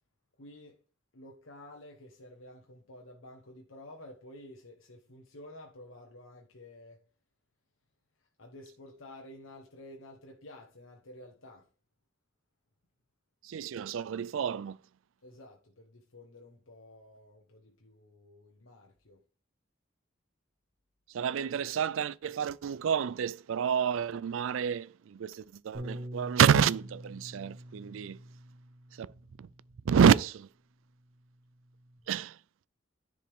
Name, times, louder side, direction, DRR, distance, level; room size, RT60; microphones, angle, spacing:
voice 1, 0.4-0.8 1.1-7.0 8.4-11.7 15.2-19.2, left 1 dB, 85° left, 1.2 m, -51 dB
voice 2, 13.4-14.8 21.1-28.2 28.9-29.1 29.4-29.5 29.8-30.5 32.1-32.4, right 7 dB, 80° right, 0.4 m, -28 dB
Bass guitar, 25.7-30.3 31.0-32.0, right 1 dB, 45° right, 2.6 m, -46 dB
10.0 x 5.1 x 3.6 m
head